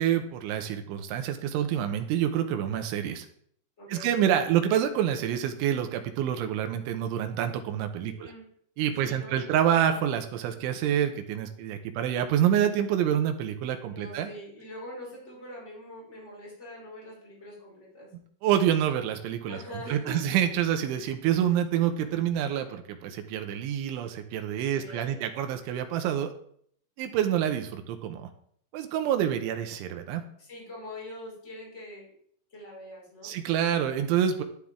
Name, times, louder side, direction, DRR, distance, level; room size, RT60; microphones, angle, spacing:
voice 1, 0.0-3.3 3.9-8.3 8.8-14.3 18.4-26.3 27.0-28.3 28.7-30.2 33.2-34.4, right 10 dB, 80° right, 7 dB, 3.1 m, -27 dB
voice 2, 3.8-4.1 8.0-8.5 9.0-9.5 13.9-18.1 19.5-20.3 24.6-25.2 30.4-32.1 32.5-33.3, equal, 15° left, -4 dB, 4.8 m, -43 dB
11.5 x 11.5 x 3.6 m, 0.63 s
omnidirectional pair, 5.9 m